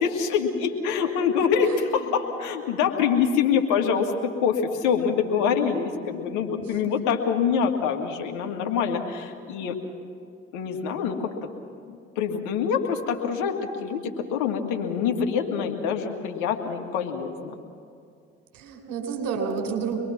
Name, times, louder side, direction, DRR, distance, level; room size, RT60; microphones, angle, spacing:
voice 1, 0.0-9.7 10.5-11.3 11.9-17.5, left 7 dB, 70° left, 3 dB, 2.1 m, -25 dB
voice 2, 1.6-2.1 18.5-20.0, right 6 dB, 65° right, 3 dB, 4.1 m, -30 dB
25.0 x 22.0 x 5.9 m, 2.4 s
hypercardioid pair, 50°, 31 cm